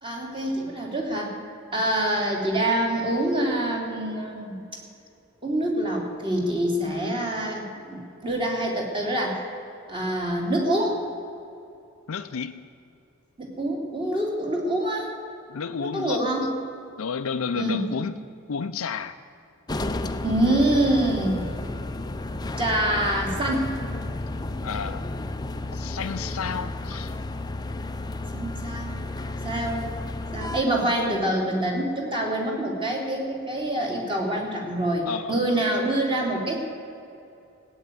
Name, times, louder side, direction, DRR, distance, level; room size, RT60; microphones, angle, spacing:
voice 1, 0.0-1.3 1.7-4.6 5.4-9.4 9.9-11.0 13.4-15.1 15.8-16.5 17.5-18.0 20.2-21.4 22.6-23.7 28.3-28.9 29.4-29.9 30.3-36.6, right 1 dB, 25° right, 0 dB, 3.1 m, -26 dB
voice 2, 12.1-12.7 15.5-16.2 17.0-18.2 18.5-19.2 24.6-25.1 25.7-27.1 35.1-35.4, left 5 dB, 80° left, 8 dB, 0.6 m, -31 dB
sound 1, 19.7-30.6, left 2 dB, 20° left, 0.6 m, -32 dB
16.5 x 9.2 x 9.3 m, 2.7 s
head